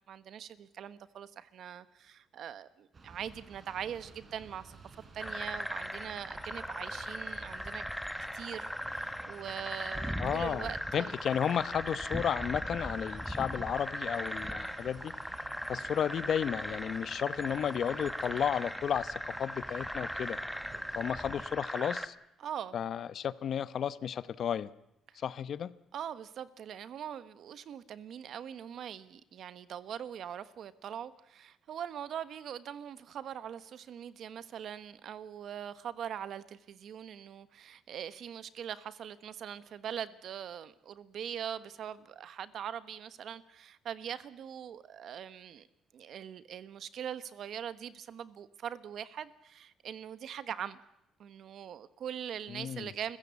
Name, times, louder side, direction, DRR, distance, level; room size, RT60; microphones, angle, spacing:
voice 1, 0.0-4.8 5.1-7.8 8.3-11.1 22.4-22.7 25.1-25.2 25.9-45.7 45.9-50.8 51.2-53.2, right 9 dB, 70° right, 14 dB, 1.2 m, -42 dB
sound 1, 2.9-21.2, right 4 dB, 40° right, 4.4 m, -53 dB
sound 2, 5.2-22.1, equal, ahead, 1.4 m, -38 dB
voice 2, 10.2-15.1 15.7-20.4 20.9-22.1 22.7-24.7 25.1-25.7 52.5-52.9, left 8 dB, 60° left, 16 dB, 0.9 m, -33 dB
29.0 x 15.5 x 8.4 m, 0.86 s
cardioid pair, 90°, 0 cm